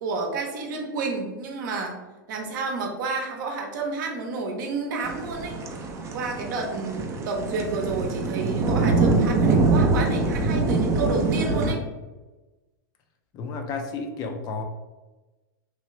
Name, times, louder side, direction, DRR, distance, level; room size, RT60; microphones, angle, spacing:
voice 1, 0.0-2.0 2.3-5.6 6.1-11.8, right 3 dB, 65° right, 2 dB, 0.7 m, -30 dB
sound 1, 5.0-11.7, right 3 dB, 25° right, 0.4 m, -24 dB
voice 2, 13.3-14.6, left 4 dB, 35° left, 4 dB, 0.5 m, -32 dB
3.1 x 2.4 x 3.0 m, 1.2 s
hypercardioid pair, 120°, 11 cm